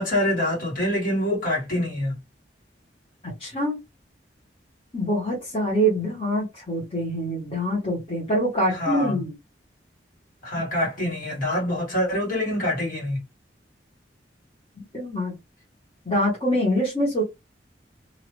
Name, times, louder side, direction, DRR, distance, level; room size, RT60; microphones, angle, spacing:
voice 1, 0.0-2.2 8.7-9.2 10.4-13.2, left 1 dB, 55° left, 1.9 m, -25 dB
voice 2, 3.4-3.8 4.9-9.3 11.0-11.1 14.8-15.3 16.0-17.2, equal, 35° left, 1.3 m, -25 dB
2.8 x 2.4 x 3.1 m
head